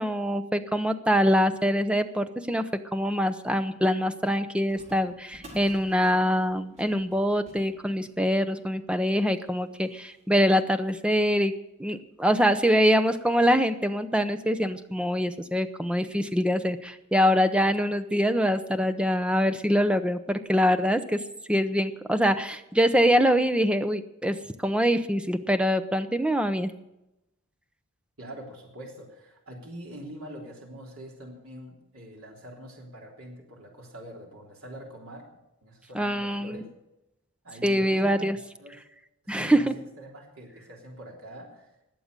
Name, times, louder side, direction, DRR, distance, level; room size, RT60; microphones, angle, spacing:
voice 1, 0.0-11.5 11.8-21.2 21.5-26.7 35.9-36.6 37.6-38.4 39.3-39.8, equal, 5° right, 10 dB, 0.7 m, -24 dB
sound 1, 4.7-11.6 12.2-12.3 12.5-12.6 13.0-13.8 14.3-14.4 15.2-15.3 15.7-15.8 17.2-17.4 17.9-18.0 18.6-18.7, equal, 35° right, 4.3 m, -54 dB
voice 2, 28.2-35.3 35.6-36.7 37.4-38.8 39.2-39.7 40.0-41.7, equal, 75° right, -1 dB, 3.4 m, -44 dB
20.0 x 7.7 x 6.7 m, 0.91 s
head